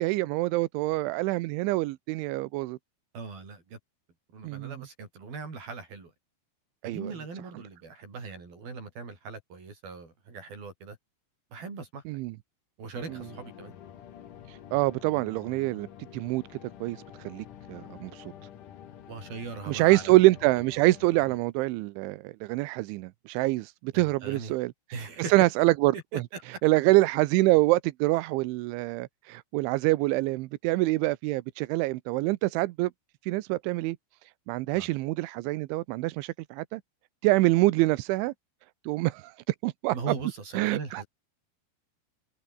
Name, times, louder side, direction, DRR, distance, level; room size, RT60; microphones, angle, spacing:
voice 1, 0.0-2.8 4.4-4.7 6.8-7.1 12.1-12.3 14.5-15.9 16.1-16.4 16.8-18.3 19.7-24.7 25.3-26.0 26.6-32.9 33.3-34.0 34.5-36.8 37.2-38.3 38.8-39.9 40.5-41.0, right 20 dB, 85° right, 3.1 m, -25 dB
voice 2, 3.1-3.8 4.3-6.1 6.8-11.0 11.5-12.0 12.8-13.8 19.1-20.2 23.9-24.5 24.9-25.3 26.1-26.4 34.7-34.9 39.9-41.1, right 4 dB, 50° right, 8.8 m, -40 dB
sound 1, 12.9-21.4, left 10 dB, 55° left, 2.7 m, -48 dB
omnidirectional pair, 5.5 m